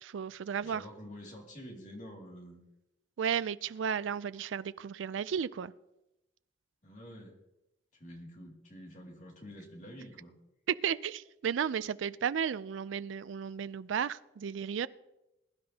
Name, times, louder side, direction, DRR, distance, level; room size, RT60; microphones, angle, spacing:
voice 1, 0.0-0.8 3.2-5.7 10.7-14.9, right 7 dB, 90° right, 16 dB, 0.4 m, -34 dB
voice 2, 0.6-2.6 6.8-7.4 7.9-10.3, equal, 40° left, 0 dB, 2.5 m, -48 dB
21.5 x 10.5 x 2.8 m, 0.92 s
head